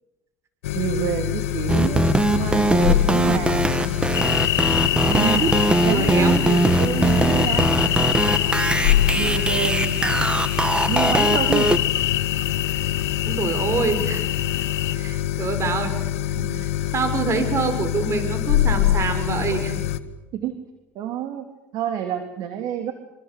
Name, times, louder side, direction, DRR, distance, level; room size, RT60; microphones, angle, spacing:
sound 1, 0.6-20.0, left 12 dB, 90° left, 1.5 m, -25 dB
voice 1, 0.7-3.7 5.0-5.5 5.8-7.7 9.1-10.2 10.9-11.7 20.3-20.5 20.9-21.5 21.7-22.9, right 9 dB, 65° right, 7 dB, 3.1 m, -27 dB
sound 2, 1.7-11.8, right 1 dB, 15° right, 2.1 m, -21 dB
sound 3, 4.1-15.0, left 13 dB, 55° left, 1.1 m, -26 dB
voice 2, 5.2-5.6 5.9-6.9 13.2-14.3 14.9-16.0 16.4-19.8, right 4 dB, 40° right, 9 dB, 5.5 m, -26 dB
26.0 x 25.5 x 8.3 m, 0.98 s
supercardioid pair, 80°, 7 cm